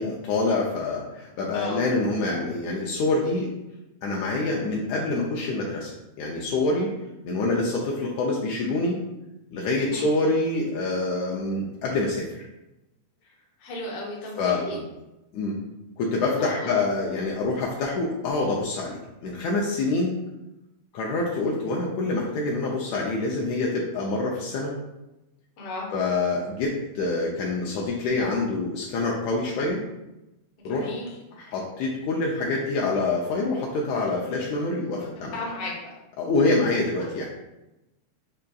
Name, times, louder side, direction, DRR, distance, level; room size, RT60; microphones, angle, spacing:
voice 1, 0.0-3.5 4.0-5.9 6.2-6.9 7.2-9.0 9.5-12.3 14.4-14.9 15.3-15.6 16.0-20.2 20.9-24.8 25.9-29.8 30.6-30.9 31.3-35.4 36.2-37.3, left 2 dB, 80° left, -2 dB, 1.8 m, -26 dB
voice 2, 1.5-1.8 9.8-10.0 13.6-14.8 16.4-16.8 25.6-25.9 30.6-31.1 35.3-35.9, left 2 dB, 65° left, -3 dB, 1.6 m, -34 dB
5.4 x 2.5 x 2.2 m, 0.95 s
omnidirectional pair, 3.3 m